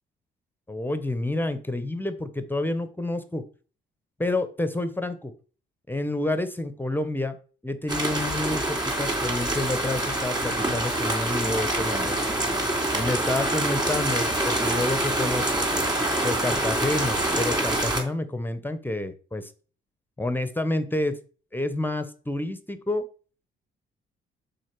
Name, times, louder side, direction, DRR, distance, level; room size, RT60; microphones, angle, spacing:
voice 1, 0.7-3.4 4.2-5.3 5.9-7.4 7.6-12.2 12.9-15.7 16.2-19.5 20.2-21.2 21.5-23.0, left 2 dB, 10° left, 11 dB, 0.8 m, -29 dB
sound 1, 7.9-18.0, right 1 dB, 20° right, 2.9 m, -26 dB
6.3 x 4.1 x 5.9 m, 0.40 s
cardioid pair, 90°, 20 cm